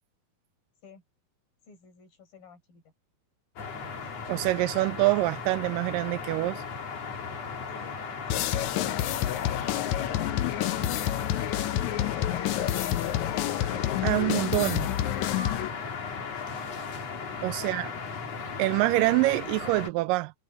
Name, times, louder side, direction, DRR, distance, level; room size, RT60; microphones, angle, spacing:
voice 1, 1.7-2.8 15.9-16.6 17.6-18.4, left 7 dB, 65° left, 8.2 m, -53 dB
sound 1, 3.6-19.9, left 5 dB, 45° left, 3.6 m, -37 dB
voice 2, 4.3-6.6 14.0-14.9 17.4-17.9 18.6-20.3, right 19 dB, 80° right, 2.0 m, -25 dB
sound 2, 8.3-15.7, left 13 dB, 80° left, 1.7 m, -28 dB
omnidirectional pair, 4.3 m